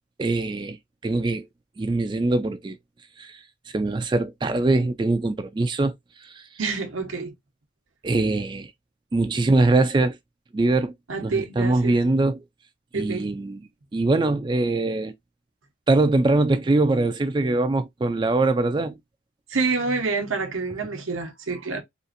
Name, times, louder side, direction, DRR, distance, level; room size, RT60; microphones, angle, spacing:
voice 1, 0.2-0.8 1.0-1.4 1.8-2.8 3.2-3.4 3.7-5.9 6.2-6.4 8.0-8.7 9.1-10.2 10.5-10.9 11.2-12.4 12.9-13.6 13.9-15.1 15.9-19.0, right 2 dB, 25° right, 0.3 m, -22 dB
voice 2, 6.6-7.3 11.1-12.0 12.9-13.4 19.5-21.8, right 4 dB, 85° right, 0.9 m, -27 dB
3.9 x 2.5 x 2.5 m
head